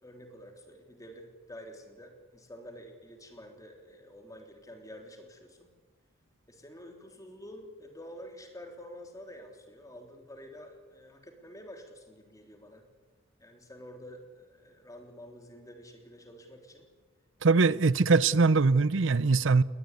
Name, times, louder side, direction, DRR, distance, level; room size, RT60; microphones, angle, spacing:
voice 1, 0.0-5.7 6.5-12.9 13.4-16.9 17.5-18.0 19.3-19.4, equal, 15° left, 3.5 m, -49 dB
voice 2, 17.4-19.6, right 4 dB, 65° right, 0.6 m, -22 dB
20.0 x 19.5 x 9.5 m
head